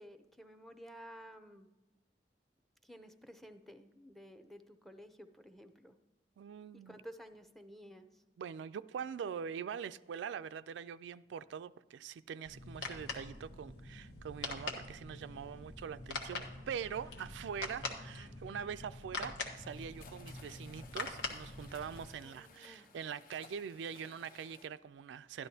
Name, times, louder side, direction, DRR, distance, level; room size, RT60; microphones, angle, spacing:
voice 1, 0.0-1.7 2.8-6.0 6.7-8.2 22.2-22.9, equal, ahead, 0.5 m, -53 dB
voice 2, 6.4-7.0 8.4-25.5, right 7 dB, 85° right, 0.3 m, -43 dB
sound 1, 12.4-22.1, left 3 dB, 85° left, 1.2 m, -44 dB
sound 2, 19.5-24.7, left 4 dB, 50° left, 0.7 m, -59 dB
12.0 x 11.0 x 2.7 m
head